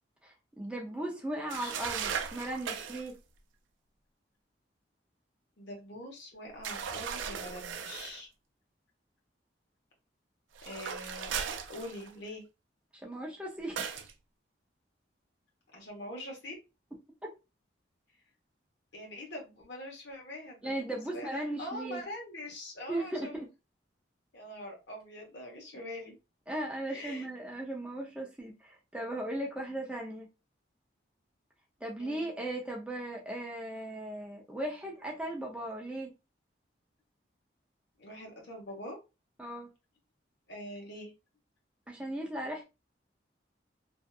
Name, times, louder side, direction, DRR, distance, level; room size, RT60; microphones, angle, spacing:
voice 1, 0.2-3.2 13.0-14.1 17.2-17.3 20.6-22.0 22.9-23.5 26.5-30.3 31.8-36.1 39.4-39.7 41.9-42.6, right 1 dB, 5° right, 0.5 m, -37 dB
sound 1, 1.5-3.1 6.6-8.2 10.6-12.3 13.8-14.1, right 7 dB, 90° right, 0.4 m, -37 dB
voice 2, 5.6-8.3 10.6-11.3 11.7-12.4 15.7-16.5 18.9-23.3 24.3-26.1 26.9-27.2 32.0-32.3 38.0-39.0 40.5-41.1, left 1 dB, 70° left, 1.0 m, -44 dB
2.6 x 2.4 x 2.3 m
head